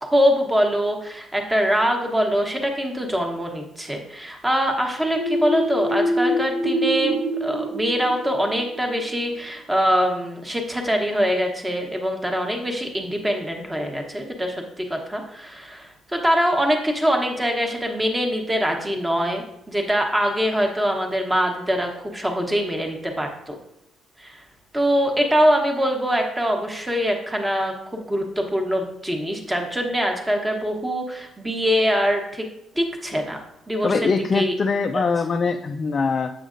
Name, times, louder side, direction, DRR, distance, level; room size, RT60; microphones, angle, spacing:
voice 1, 0.0-23.6 24.2-24.4 24.7-32.5 32.7-34.1 34.3-34.5 34.9-35.0, equal, 10° right, 3 dB, 1.0 m, -23 dB
sound 1, 5.1-8.8, equal, 50° right, 0.9 m, -25 dB
voice 2, 33.8-36.3, left 4 dB, 35° left, 5 dB, 0.3 m, -22 dB
7.3 x 6.5 x 2.5 m, 0.83 s
cardioid pair, 135°, 0 cm